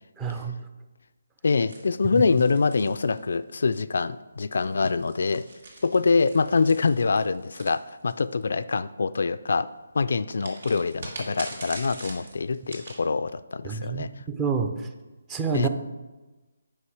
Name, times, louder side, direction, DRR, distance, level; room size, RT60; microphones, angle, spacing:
voice 1, 0.2-0.6 2.1-2.2 13.6-14.9 15.3-15.7, right 6 dB, 10° right, 7 dB, 0.5 m, -28 dB
voice 2, 1.4-5.4 5.8-9.7 9.9-14.1 15.5-15.7, left 4 dB, 65° left, 14 dB, 0.3 m, -25 dB
sound 1, 1.7-3.7 4.7-8.4 10.4-13.0, right 2 dB, 65° right, 2.5 m, -43 dB
8.4 x 5.9 x 4.8 m, 1.2 s
hypercardioid pair, 165°, 0 cm